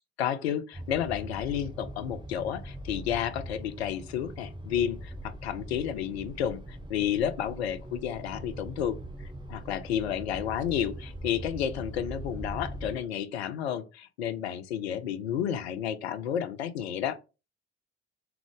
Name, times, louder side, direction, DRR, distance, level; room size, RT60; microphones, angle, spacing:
voice 1, 0.2-9.0 9.5-17.2, left 9 dB, 75° left, 0.5 m, -31 dB
sound 1, 0.7-13.0, right 1 dB, 15° right, 1.0 m, -41 dB
3.6 x 3.5 x 3.4 m
figure-of-eight pair, 45°, 32 cm